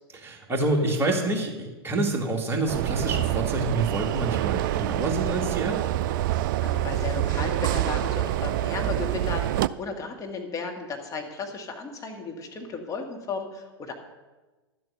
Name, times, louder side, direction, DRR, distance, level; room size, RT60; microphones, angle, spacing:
voice 1, 0.1-5.8, right 2 dB, 15° right, 0 dB, 2.3 m, -27 dB
sound 1, 2.7-9.7, right 14 dB, 50° right, 0.4 m, -26 dB
sound 2, 2.9-9.5, left 6 dB, 50° left, 2.0 m, -45 dB
voice 2, 6.6-13.9, left 4 dB, 25° left, 3 dB, 1.9 m, -35 dB
11.5 x 7.6 x 6.6 m, 1.2 s
figure-of-eight pair, 100°, 14 cm